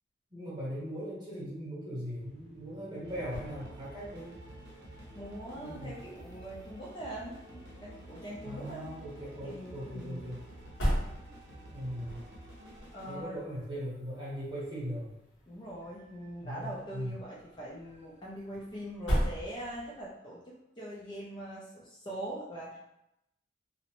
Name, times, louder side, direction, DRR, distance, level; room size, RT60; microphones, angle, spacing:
voice 1, 0.3-4.3 5.5-5.9 8.4-10.4 11.7-12.2 13.1-15.1 16.4-17.1, equal, 25° right, -8 dB, 1.0 m, -39 dB
sound 1, 2.0-20.1, equal, 70° left, 0.9 m, -40 dB
sound 2, 3.0-14.2 15.8-16.5 16.7-16.8 17.2-19.9, right 1 dB, 60° right, 0.7 m, -51 dB
voice 2, 5.2-8.9 9.4-10.2 12.9-13.4 15.5-22.8, right 1 dB, 25° left, -6 dB, 0.4 m, -42 dB
2.6 x 2.0 x 2.8 m, 0.86 s
head